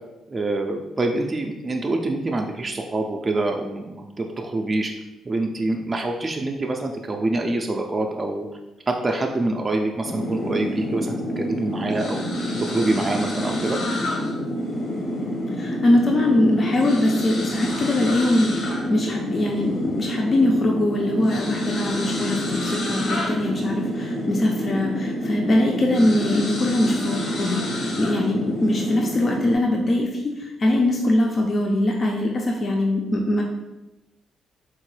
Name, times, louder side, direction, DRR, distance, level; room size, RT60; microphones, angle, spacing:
voice 1, 0.3-4.9 5.2-8.5 8.9-12.3 12.6-13.8, right 2 dB, 25° right, 2 dB, 0.3 m, -25 dB
sound 1, 10.0-29.6, left 1 dB, 65° left, 0.8 m, -27 dB
voice 2, 15.6-33.4, left 1 dB, 40° left, 0 dB, 0.4 m, -22 dB
3.8 x 2.1 x 3.1 m, 1.0 s
cardioid pair, 90°, 0 cm